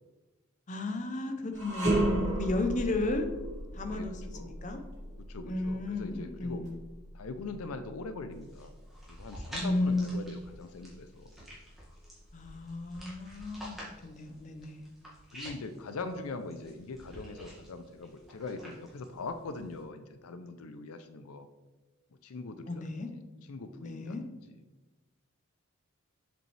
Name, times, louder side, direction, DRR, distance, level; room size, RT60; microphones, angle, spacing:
voice 1, 0.7-3.3 3.7-4.1 4.4-4.8 5.4-6.7 9.6-10.2 12.3-13.8 14.0-14.9 22.7-23.1 23.8-24.2, left 2 dB, 35° left, 5 dB, 0.6 m, -33 dB
sound 1, 1.5-10.8 11.2-11.4 12.2-13.1, right 1 dB, 35° right, 2.3 m, -35 dB
voice 2, 2.6-3.0 3.9-4.6 5.3-6.7 7.1-8.7 9.1-11.3 15.3-21.5 22.2-23.0 23.4-24.2 24.5-24.6, left 3 dB, 80° left, 9 dB, 0.5 m, -42 dB
sound 2, 8.3-19.8, equal, ahead, 1.8 m, -49 dB
7.4 x 5.2 x 3.3 m, 1.1 s
head